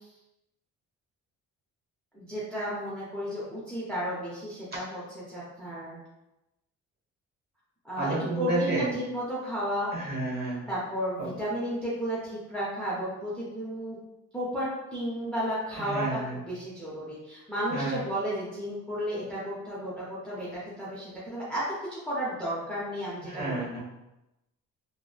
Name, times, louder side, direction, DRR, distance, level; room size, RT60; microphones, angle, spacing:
voice 1, 2.1-6.0 7.8-9.9 10.7-14.0 14.3-21.6 21.9-23.8, equal, 5° left, -8 dB, 0.7 m, -33 dB
voice 2, 8.0-8.9 9.9-10.6 11.2-11.3 15.7-16.4 17.7-18.0 23.2-23.8, right 2 dB, 35° right, -5 dB, 1.1 m, -30 dB
2.9 x 2.0 x 2.3 m, 0.96 s
cardioid pair, 90°, 30 cm